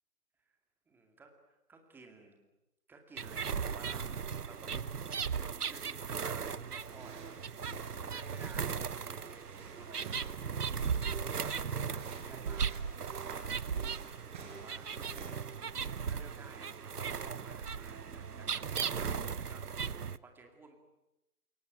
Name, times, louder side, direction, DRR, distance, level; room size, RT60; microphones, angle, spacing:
voice 1, 0.9-2.5 2.9-4.2 4.4-4.8 5.3-7.6 8.0-12.9 14.1-14.9 15.8-20.8, right 3 dB, 5° right, 4 dB, 2.2 m, -55 dB
sound 1, 3.2-20.2, right 6 dB, 75° right, 1.1 m, -37 dB
sound 2, 6.7-15.5, right 5 dB, 30° right, 6.2 m, -51 dB
28.5 x 22.5 x 8.9 m, 0.92 s
figure-of-eight pair, 145°, 47 cm